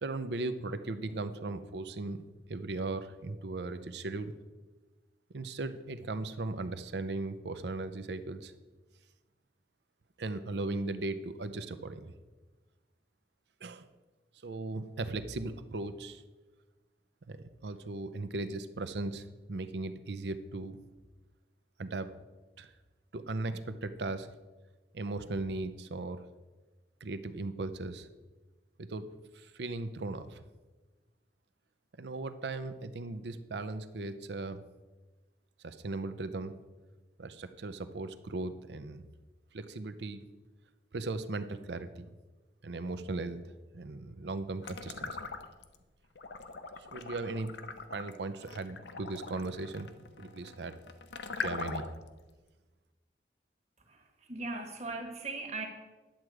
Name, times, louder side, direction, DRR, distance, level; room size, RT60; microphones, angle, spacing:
voice 1, 0.0-2.2 2.5-4.3 5.3-8.5 10.2-12.1 13.6-13.9 14.4-16.2 17.2-20.8 21.8-22.1 22.6-22.7 23.1-24.3 24.9-26.2 27.0-28.1 28.8-30.4 31.9-34.6 35.6-36.6 37.2-39.1 39.5-40.2 40.9-42.1 42.6-43.4 43.7-45.2 46.9-47.5 47.9-49.9 50.2-50.8 51.4-51.9, right 2 dB, 75° right, 11 dB, 0.6 m, -37 dB
sound 1, 44.6-45.8 46.2-52.1, left 4 dB, 85° left, 0.7 m, -41 dB
voice 2, 53.9-55.7, right 3 dB, 40° right, 4 dB, 1.4 m, -39 dB
10.5 x 7.7 x 4.8 m, 1.2 s
head